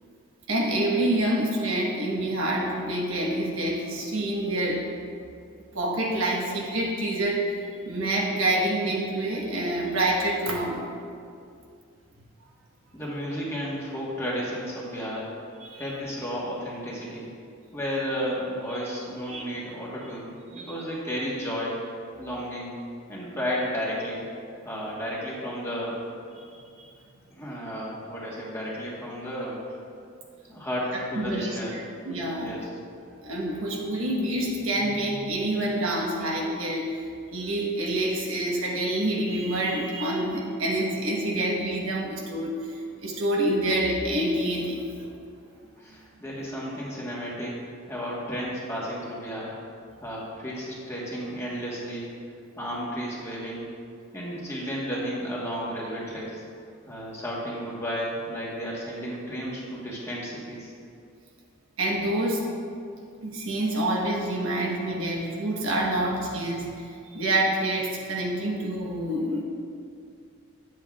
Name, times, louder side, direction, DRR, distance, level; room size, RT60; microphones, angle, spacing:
voice 1, 0.5-4.8 5.7-7.6 7.8-10.9 15.6-15.9 18.8-18.9 19.3-19.5 20.6-20.7 31.1-31.6 32.0-32.5 33.1-36.9 37.3-45.1 61.8-62.4 63.2-69.4, right 1 dB, 90° right, -2 dB, 1.2 m, -27 dB
voice 2, 12.9-15.3 15.7-17.3 17.7-21.8 22.2-22.7 23.1-24.2 24.6-26.0 27.3-29.6 30.5-31.8 32.4-32.7 45.8-47.6 47.9-49.5 50.0-52.1 52.5-53.7 54.1-56.4 56.9-60.7, equal, 15° left, -6 dB, 1.2 m, -33 dB
8.7 x 7.8 x 2.3 m, 2.4 s
head